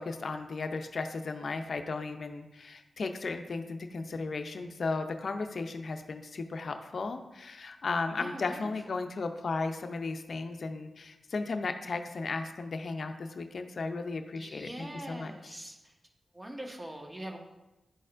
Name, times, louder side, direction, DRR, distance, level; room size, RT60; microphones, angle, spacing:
voice 1, 0.0-15.6, left 3 dB, 65° left, 7 dB, 0.5 m, -35 dB
voice 2, 8.1-8.7 14.4-15.8 16.3-17.4, right 1 dB, 25° right, 2 dB, 1.3 m, -42 dB
11.0 x 4.1 x 2.5 m, 0.99 s
cardioid pair, 50°, 0 cm